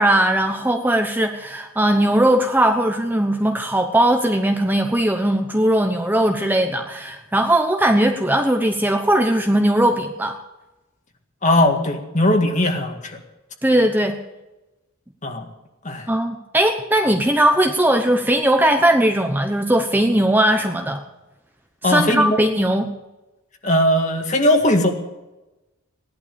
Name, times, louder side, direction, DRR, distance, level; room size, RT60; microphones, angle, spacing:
voice 1, 0.0-10.4 13.6-14.2 16.1-21.0 21.8-22.9, right 1 dB, 10° right, 5 dB, 0.9 m, -19 dB
voice 2, 11.4-13.2 15.2-15.5 15.8-16.1 21.8-22.4 23.6-24.9, left 1 dB, 35° left, 4 dB, 2.0 m, -19 dB
17.0 x 11.5 x 6.9 m, 1.0 s
head